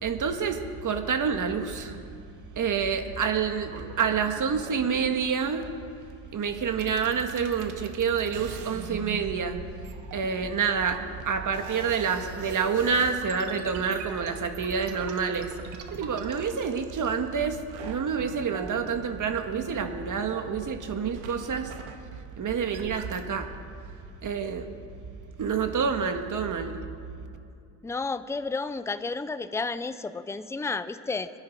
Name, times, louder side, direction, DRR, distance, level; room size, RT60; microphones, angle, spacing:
voice 1, 0.0-2.0 2.5-5.6 6.3-9.6 10.1-15.5 15.9-21.7 22.4-23.5 24.2-24.7 25.4-26.8, right 6 dB, 40° right, 6 dB, 1.7 m, -28 dB
sound 1, 3.6-5.6 6.5-6.6 6.7-17.4 17.7-20.3 20.6-23.3, right 6 dB, 75° right, 1.7 m, -43 dB
voice 2, 27.8-31.3, left 4 dB, 5° left, 12 dB, 0.5 m, -31 dB
25.5 x 10.5 x 4.6 m, 2.5 s
cardioid pair, 95°, 46 cm